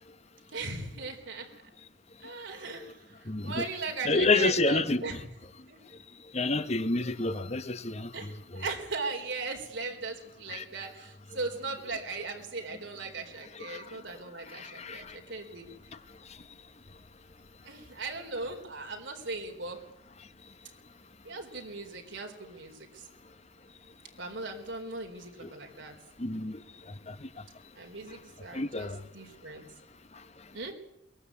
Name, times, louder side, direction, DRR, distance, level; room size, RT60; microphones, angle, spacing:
voice 1, 0.5-1.5 2.2-5.3 5.7-5.8 8.1-15.7 17.6-19.8 21.2-23.1 24.2-25.9 27.7-29.6 30.5-30.7, right 3 dB, 75° right, 4.1 m, -38 dB
voice 2, 3.3-3.6 4.0-5.2 6.3-8.1 8.5-8.6 10.5-10.6 13.5-14.0 14.5-15.2 26.2-26.6 27.1-27.3 28.5-29.0, left 3 dB, 35° left, 1.1 m, -29 dB
22.5 x 20.0 x 8.5 m
head